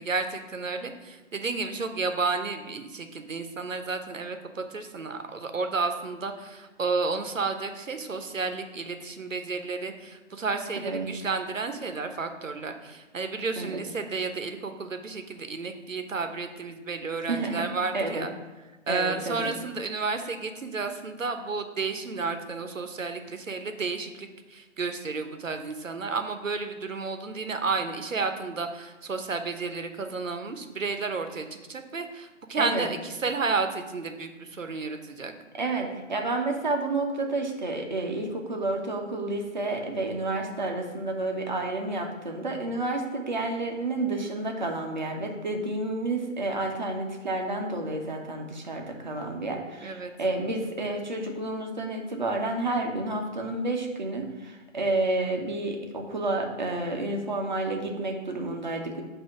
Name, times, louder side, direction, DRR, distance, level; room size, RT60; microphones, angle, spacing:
voice 1, 0.0-18.3 18.9-35.3 49.8-50.1, right 4 dB, 75° right, 7 dB, 0.9 m, -32 dB
voice 2, 17.3-17.7 17.9-18.3 18.9-19.5 32.6-32.9 35.6-59.0, right 2 dB, 35° right, 2 dB, 0.8 m, -30 dB
7.3 x 2.8 x 5.7 m, 1.2 s
figure-of-eight pair, 155°, 39 cm